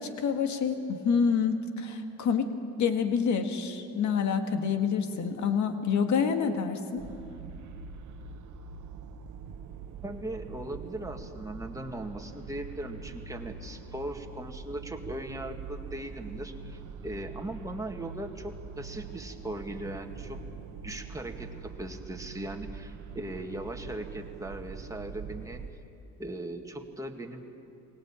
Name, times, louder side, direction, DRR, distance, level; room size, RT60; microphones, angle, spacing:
voice 1, 0.0-2.5 2.8-7.1, left 6 dB, 70° left, 7 dB, 1.8 m, -27 dB
sound 1, 7.0-25.7, right 4 dB, 75° right, 1.1 m, -43 dB
voice 2, 10.0-20.4 20.8-25.6 26.2-27.4, right 1 dB, 10° right, 3 dB, 2.0 m, -39 dB
22.0 x 18.0 x 8.9 m, 2.7 s
cardioid pair, 90°, 30 cm